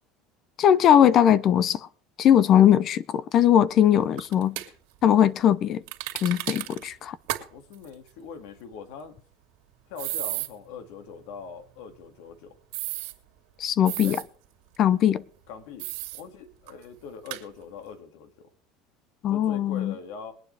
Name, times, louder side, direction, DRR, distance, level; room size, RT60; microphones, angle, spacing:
voice 1, 0.6-1.8 2.2-4.5 5.0-5.8 6.2-7.2 13.6-14.2 14.8-15.2 19.2-19.9, left 10 dB, 45° left, 0.6 m, -20 dB
sound 1, 4.2-4.7 5.9-6.9 7.3-7.4 7.7-7.8 10.0-10.5 12.7-13.1 13.9-14.2 15.8-16.2 16.7-16.8 17.3-17.4, right 18 dB, 80° right, 2.4 m, -33 dB
voice 2, 7.5-9.2 9.9-12.6 14.0-14.2 15.5-15.9 16.1-18.5 19.3-20.3, left 6 dB, 75° left, 2.2 m, -42 dB
22.5 x 9.4 x 3.4 m
supercardioid pair, 130°, 0 cm